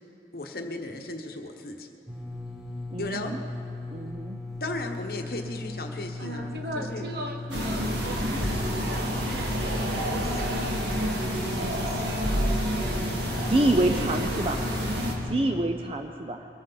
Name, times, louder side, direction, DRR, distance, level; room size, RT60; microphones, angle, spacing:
voice 1, 0.3-1.9 3.0-3.4 4.6-6.5 6.7-7.0 10.2-10.3, left 2 dB, 55° left, 4 dB, 1.1 m, -35 dB
sound 1, 2.1-15.3, left 2 dB, ahead, 2.2 m, -37 dB
voice 2, 2.9-3.4 3.9-4.4 13.5-14.6 15.3-16.5, right 1 dB, 30° right, 5 dB, 0.5 m, -26 dB
voice 3, 6.2-11.4 11.7-14.4 14.8-15.3, right 1 dB, 60° right, 3 dB, 1.4 m, -40 dB
sound 2, 7.5-15.1, equal, 85° right, 2.1 m, -29 dB
22.5 x 14.0 x 4.0 m, 2.6 s
head